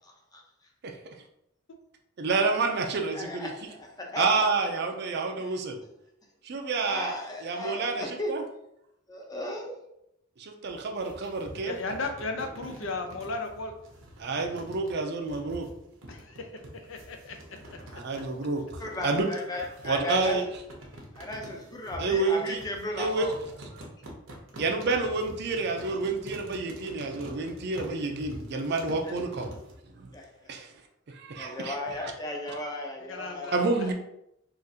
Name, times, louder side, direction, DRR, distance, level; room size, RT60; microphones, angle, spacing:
voice 1, 2.2-3.5 4.2-5.8 6.4-7.2 7.4-8.4 10.4-11.8 14.2-15.7 17.9-19.3 19.8-20.4 22.0-22.6 23.0-23.3 24.6-29.5 30.0-30.1 30.5-30.7 31.1-31.8 32.0-32.1 33.5-33.9, right 3 dB, 55° right, 4 dB, 0.5 m, -29 dB
voice 2, 3.1-4.7 5.4-5.5 6.8-8.4 9.1-9.8 18.8-20.4 21.1-23.3 29.0-29.2 30.1-30.5 31.3-33.9, left 1 dB, 20° left, 0 dB, 0.6 m, -36 dB
sound 1, 10.6-29.8, right 1 dB, 80° right, 0.8 m, -46 dB
voice 3, 11.6-13.7 16.1-17.6 33.1-33.6, left 3 dB, 75° left, 4 dB, 0.5 m, -35 dB
3.7 x 2.5 x 2.7 m, 0.79 s
head